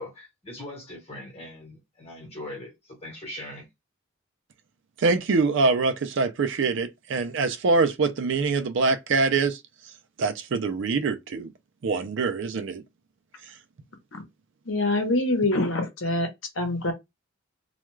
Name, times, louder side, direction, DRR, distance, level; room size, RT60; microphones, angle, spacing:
voice 1, 0.0-3.7, left 1 dB, 30° left, 1.2 m, -40 dB
voice 2, 5.0-9.6 10.2-11.5 11.8-12.8, right 4 dB, 60° right, 0.4 m, -24 dB
voice 3, 14.7-16.3 16.6-16.9, left 2 dB, 65° left, 0.9 m, -25 dB
2.3 x 2.3 x 3.1 m
head